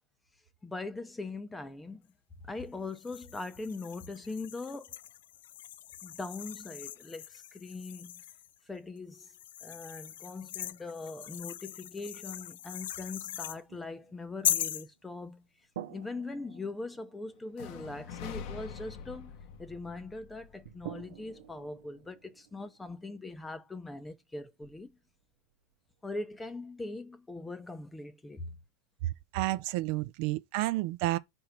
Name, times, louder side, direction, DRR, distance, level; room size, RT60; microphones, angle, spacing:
voice 1, 0.6-2.1 2.4-5.0 6.0-8.2 8.7-9.3 9.6-15.4 15.9-19.3 19.6-24.9 26.0-28.6, left 3 dB, 10° left, 0.7 m, -41 dB
sound 1, 2.9-8.5 9.1-13.6 14.4-14.9, left 12 dB, 85° left, 0.4 m, -39 dB
sound 2, 13.7-15.3 15.7-20.1 20.6-26.2, right 11 dB, 85° right, 0.8 m, -51 dB
sound 3, 17.5-21.5, left 7 dB, 55° left, 1.0 m, -45 dB
voice 2, 29.0-31.2, right 17 dB, 55° right, 0.5 m, -31 dB
4.6 x 4.4 x 5.1 m
supercardioid pair, 150°, 0 cm